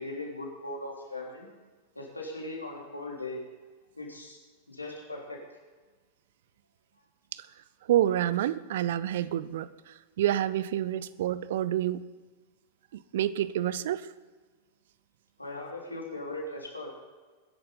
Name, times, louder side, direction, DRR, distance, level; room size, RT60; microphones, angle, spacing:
voice 1, 0.0-1.5 2.0-3.4 4.0-4.4 4.7-5.4 15.4-16.9, left 2 dB, 85° left, -1 dB, 3.6 m, -39 dB
voice 2, 7.8-12.0 12.9-14.1, right 12 dB, 55° right, 17 dB, 0.6 m, -28 dB
22.0 x 11.0 x 4.0 m, 1.4 s
figure-of-eight pair, 90°, 0 cm